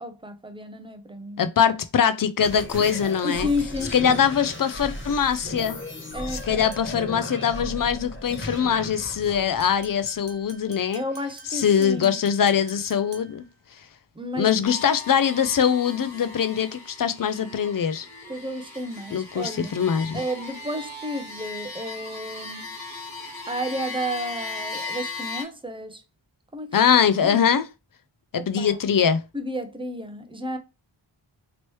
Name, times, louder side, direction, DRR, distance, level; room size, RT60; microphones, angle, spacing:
voice 1, 0.0-1.4 3.2-4.2 6.1-6.6 10.9-12.2 14.1-14.5 18.3-19.7 20.1-22.7 23.5-26.0 26.5-27.5 28.4-28.8 29.3-30.6, left 1 dB, 10° right, 0.5 m, -32 dB
voice 2, 1.4-3.5 3.9-5.8 6.3-11.0 11.5-13.4 14.3-18.1 19.1-20.2 26.7-27.7 28.3-29.2, left 7 dB, 50° left, 0.4 m, -22 dB
sound 1, 2.4-10.6, left 1 dB, 25° left, 0.9 m, -36 dB
sound 2, 3.8-4.3 6.7-7.1 9.6-13.6, right 4 dB, 60° right, 0.8 m, -49 dB
sound 3, 14.6-25.4, left 3 dB, 5° left, 1.5 m, -38 dB
3.0 x 3.0 x 3.0 m
wide cardioid pair, 55°, 47 cm